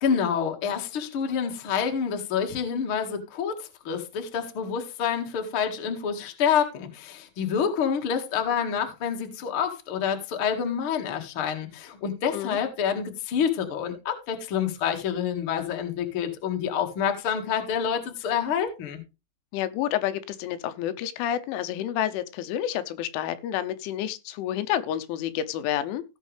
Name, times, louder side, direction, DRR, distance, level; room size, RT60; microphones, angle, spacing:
voice 1, 0.0-19.0, left 7 dB, 55° left, 1.4 m, -27 dB
voice 2, 19.5-26.0, left 11 dB, 85° left, 3.3 m, -29 dB
17.0 x 6.3 x 3.3 m
omnidirectional pair, 5.4 m